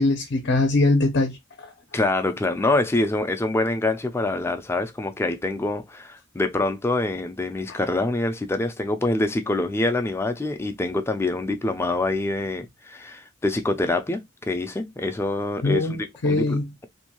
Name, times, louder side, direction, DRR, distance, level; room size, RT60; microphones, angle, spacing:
voice 1, 0.0-1.3 1.6-1.7 15.6-16.6, left 2 dB, 60° left, 0.6 m, -21 dB
voice 2, 1.9-16.9, left 2 dB, 15° left, 0.3 m, -25 dB
2.6 x 2.2 x 2.9 m
head